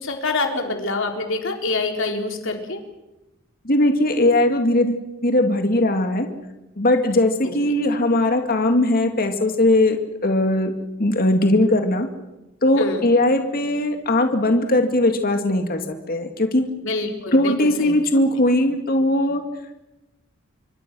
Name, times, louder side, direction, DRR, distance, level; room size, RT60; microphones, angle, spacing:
voice 1, 0.0-2.8 12.8-13.1 16.8-17.9, left 3 dB, 65° left, 3 dB, 4.0 m, -26 dB
voice 2, 3.6-6.3 6.8-10.0 10.2-10.7 11.0-12.1 12.6-16.7 17.3-19.4, left 1 dB, 45° left, 5 dB, 2.2 m, -19 dB
27.0 x 24.0 x 6.2 m, 1.0 s
head